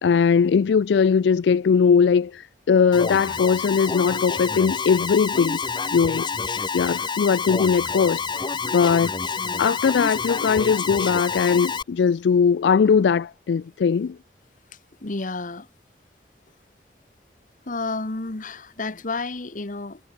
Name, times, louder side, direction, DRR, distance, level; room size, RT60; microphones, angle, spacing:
voice 1, 0.0-5.6 5.9-6.3 6.7-9.1 9.6-14.2, left 6 dB, 80° left, 0.4 m, -20 dB
Alarm, 2.9-11.8, left 4 dB, 25° left, 0.9 m, -28 dB
voice 2, 9.4-9.8 15.0-15.7 17.6-20.0, left 3 dB, 50° left, 1.2 m, -31 dB
head